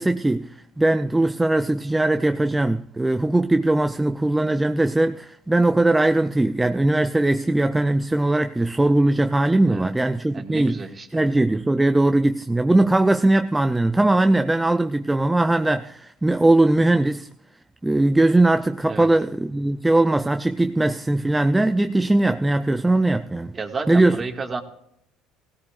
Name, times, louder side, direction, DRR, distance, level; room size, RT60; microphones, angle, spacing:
voice 1, 0.0-10.8 11.1-17.3 17.8-23.5 23.9-24.2, right 2 dB, 10° right, 0.5 m, -20 dB
voice 2, 10.3-11.1 18.9-19.1 23.5-24.6, right 4 dB, 30° right, 2.0 m, -31 dB
17.0 x 16.5 x 2.5 m
supercardioid pair, 85°, 0 cm